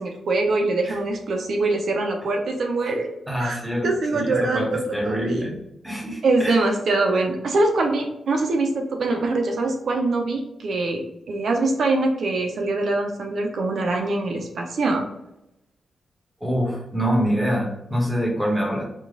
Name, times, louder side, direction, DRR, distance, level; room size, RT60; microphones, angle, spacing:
voice 1, 0.0-3.1 3.4-5.5 6.2-15.0, right 2 dB, 65° right, 3 dB, 0.7 m, -23 dB
voice 2, 3.3-5.6 5.8-6.6 16.4-18.8, equal, 5° right, -2 dB, 1.3 m, -25 dB
5.1 x 2.4 x 3.9 m, 0.86 s
wide cardioid pair, 135°, 0 cm